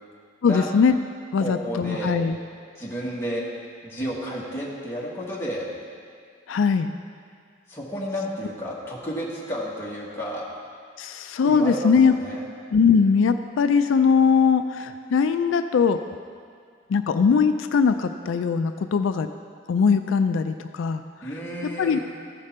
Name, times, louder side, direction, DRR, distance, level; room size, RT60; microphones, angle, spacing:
voice 1, 0.4-1.0 1.3-2.4 6.5-6.9 11.0-12.1 12.7-16.0 16.9-19.3 19.7-21.0 21.8-22.0, left 5 dB, 90° left, 9 dB, 0.4 m, -20 dB
voice 2, 1.4-2.1 2.7-3.4 3.8-5.7 7.7-10.4 11.4-12.5 21.2-22.0, equal, 15° left, -6 dB, 1.4 m, -31 dB
14.0 x 5.1 x 4.2 m, 2.1 s
head